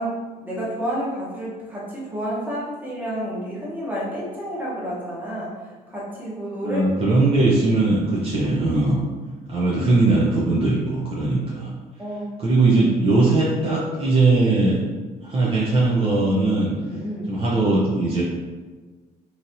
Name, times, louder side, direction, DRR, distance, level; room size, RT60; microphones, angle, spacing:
voice 1, 0.0-6.8 12.0-12.3 16.8-17.3, equal, 10° right, -7 dB, 1.0 m, -30 dB
voice 2, 6.6-9.0 9.5-11.7 12.4-14.8 15.2-16.7 17.3-18.2, right 2 dB, 35° right, -7 dB, 0.6 m, -20 dB
3.0 x 2.6 x 2.6 m, 1.4 s
cardioid pair, 110°, 17 cm